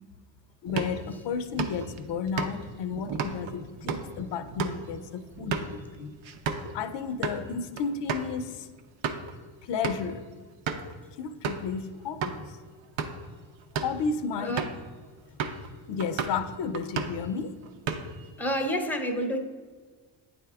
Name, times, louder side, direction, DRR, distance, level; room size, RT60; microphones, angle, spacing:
voice 1, 0.6-6.1 6.7-8.7 9.6-10.3 11.2-12.6 13.7-14.6 15.9-17.5, left 6 dB, 60° left, 11 dB, 0.6 m, -33 dB
sound 1, 0.7-6.7 7.1-7.4 7.8-7.9 8.1-8.3 8.8-9.3 9.8-10.1 10.7-10.9 11.4-11.7 12.2-12.4 12.8-13.3 13.6-14.0 14.6-14.9 15.4-15.7 16.0-16.4 16.7-17.3 17.6-18.3, right 5 dB, 70° right, 0.7 m, -33 dB
voice 2, 18.4-19.4, equal, 5° left, 6 dB, 0.7 m, -28 dB
8.8 x 3.5 x 3.4 m, 1.5 s
cardioid pair, 80°, 48 cm